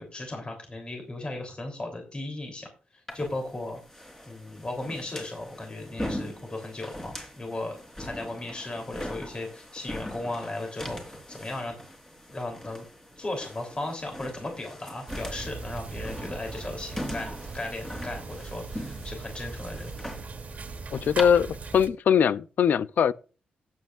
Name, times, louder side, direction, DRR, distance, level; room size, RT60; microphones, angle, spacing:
voice 1, 0.0-3.8 4.2-11.7 12.3-12.8 13.2-19.9, left 2 dB, 35° left, 3.3 m, -36 dB
sound 1, 3.1-21.2, left 1 dB, 15° left, 3.8 m, -41 dB
sound 2, 15.1-21.9, right 4 dB, 55° right, 1.6 m, -39 dB
voice 2, 20.9-23.1, left 8 dB, 70° left, 0.5 m, -22 dB
18.0 x 8.2 x 2.5 m
cardioid pair, 75°, 3 cm